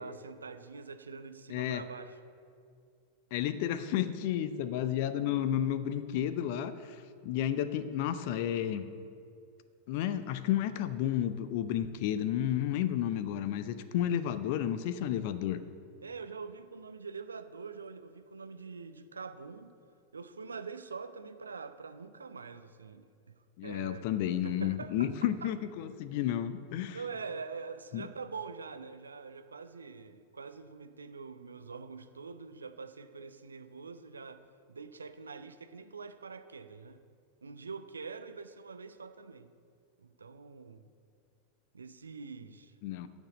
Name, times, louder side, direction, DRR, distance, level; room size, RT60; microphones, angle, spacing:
voice 1, 0.0-2.2 16.0-19.7 20.1-23.3 23.6-24.1 24.4-25.1 25.4-25.5 26.9-34.4 34.7-37.0 37.4-39.5 40.0-40.9 41.7-42.7, right 5 dB, 75° right, 10 dB, 0.6 m, -44 dB
voice 2, 1.5-1.8 3.3-7.0 7.2-8.8 9.9-15.6 23.6-27.0 27.9-28.1 42.8-43.1, left 11 dB, 50° left, 12 dB, 0.6 m, -32 dB
9.1 x 7.4 x 8.6 m, 2.3 s
figure-of-eight pair, 90°, 0 cm